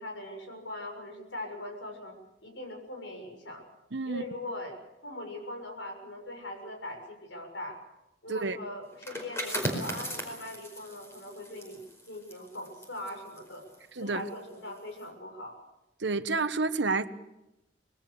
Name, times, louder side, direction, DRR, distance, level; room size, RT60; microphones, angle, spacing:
voice 1, 0.0-3.6 4.1-4.8 5.0-7.8 8.2-13.6 14.0-15.6, left 1 dB, 85° left, 3 dB, 6.9 m, -41 dB
voice 2, 3.9-4.2 8.3-8.6 14.0-14.2 16.0-17.1, right 3 dB, 70° right, 11 dB, 1.2 m, -29 dB
sound 1, 8.9-14.4 14.8-15.0, equal, 15° left, 4.9 m, -38 dB
25.5 x 21.5 x 6.9 m, 0.93 s
head